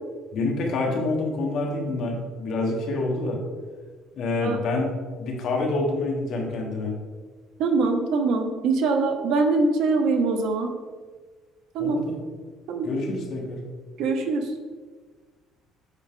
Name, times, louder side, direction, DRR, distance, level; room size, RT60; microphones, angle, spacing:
voice 1, 0.3-3.4 4.1-4.9 5.2-7.0 11.8-12.1 12.8-13.6, left 2 dB, 45° left, 0 dB, 1.4 m, -27 dB
voice 2, 7.6-10.7 11.7-12.0 12.7-12.9 14.0-14.5, right 3 dB, 65° right, 5 dB, 0.9 m, -23 dB
8.2 x 4.6 x 3.8 m, 1.4 s
cardioid pair, 165°, 0 cm